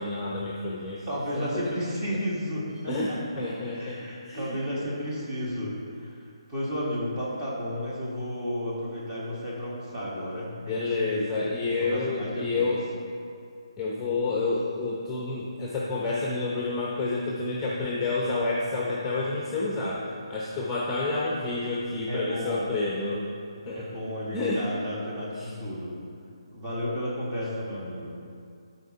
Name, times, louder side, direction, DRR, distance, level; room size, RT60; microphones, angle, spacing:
voice 1, 0.0-1.1 1.3-1.6 2.9-4.6 10.7-12.8 13.8-23.3 23.7-23.9 24.3-24.6 25.4-25.5, left 3 dB, 10° left, -4 dB, 0.8 m, -29 dB
voice 2, 1.1-3.2 3.7-6.2 6.5-11.3 11.8-12.7 22.1-22.7 23.7-25.9 26.5-28.2, equal, 20° right, -7 dB, 2.0 m, -32 dB
13.0 x 4.4 x 4.2 m, 2.4 s
figure-of-eight pair, 145°, 3 cm